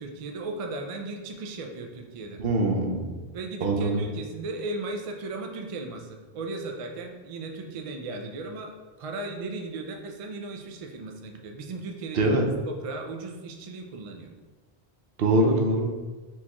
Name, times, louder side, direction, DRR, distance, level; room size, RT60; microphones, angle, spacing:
voice 1, 0.0-2.4 3.3-14.3, right 3 dB, 50° right, 2 dB, 0.4 m, -36 dB
voice 2, 2.4-3.0 3.6-4.0 12.1-12.4 15.2-15.9, right 2 dB, 70° right, 2 dB, 0.8 m, -23 dB
4.5 x 3.4 x 3.0 m, 1.3 s
omnidirectional pair, 1.1 m